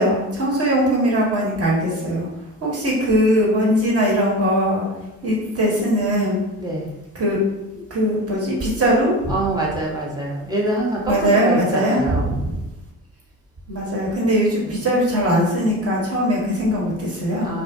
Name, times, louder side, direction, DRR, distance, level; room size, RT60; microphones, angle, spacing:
voice 1, 0.0-2.3 2.6-4.8 5.2-6.4 7.2-7.4 7.9-9.2 11.1-12.2 13.7-17.5, equal, 35° right, -4 dB, 1.0 m, -20 dB
voice 2, 6.6-6.9 9.3-12.3 14.6-14.7 17.4-17.6, right 1 dB, 10° right, -4 dB, 0.7 m, -25 dB
2.4 x 2.1 x 2.6 m, 0.93 s
figure-of-eight pair, 45°, 41 cm